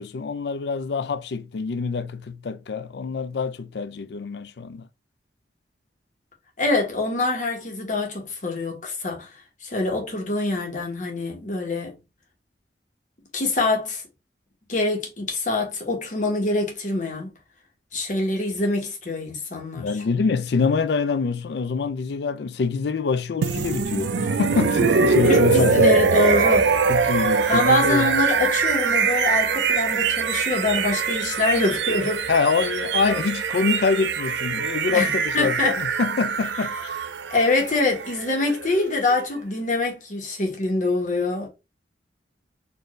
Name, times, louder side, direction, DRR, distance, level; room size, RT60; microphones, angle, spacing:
voice 1, 0.0-4.9 19.7-26.0 26.9-28.1 32.3-37.0, left 5 dB, 70° left, 0.4 m, -25 dB
voice 2, 6.6-9.3 9.6-11.9 13.3-14.0 14.7-17.3 17.9-19.9 25.3-26.7 27.5-32.2 33.0-33.1 34.9-35.8 37.3-41.5, left 2 dB, 45° left, 1.2 m, -24 dB
sound 1, 23.4-39.3, right 5 dB, 85° right, 0.5 m, -23 dB
4.4 x 2.6 x 3.1 m
head